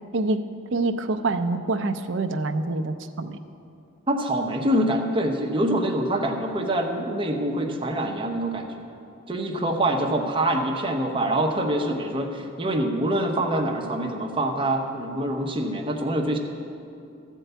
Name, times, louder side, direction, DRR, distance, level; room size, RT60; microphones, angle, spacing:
voice 1, 0.1-0.4 0.7-3.4, right 3 dB, 60° right, 7 dB, 0.5 m, -26 dB
voice 2, 4.1-8.8 9.3-16.4, right 1 dB, 25° right, 1 dB, 0.9 m, -25 dB
13.5 x 4.6 x 8.1 m, 2.6 s
head